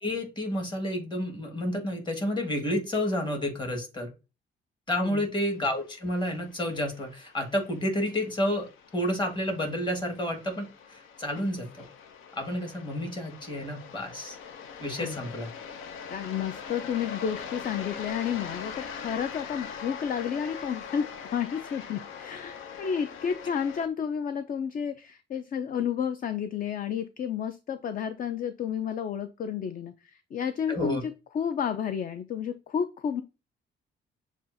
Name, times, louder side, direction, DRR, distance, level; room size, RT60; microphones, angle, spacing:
voice 1, 0.0-4.1 4.9-8.7 8.9-11.8 12.4-14.4 14.8-15.5 30.7-31.0, left 1 dB, 25° left, 2 dB, 1.6 m, -30 dB
sound 1, 5.5-23.9, left 6 dB, 90° left, 0.6 m, -42 dB
voice 2, 16.1-33.2, left 8 dB, 45° left, 9 dB, 0.4 m, -31 dB
7.1 x 2.4 x 2.6 m, 0.29 s
cardioid pair, 90°, 20 cm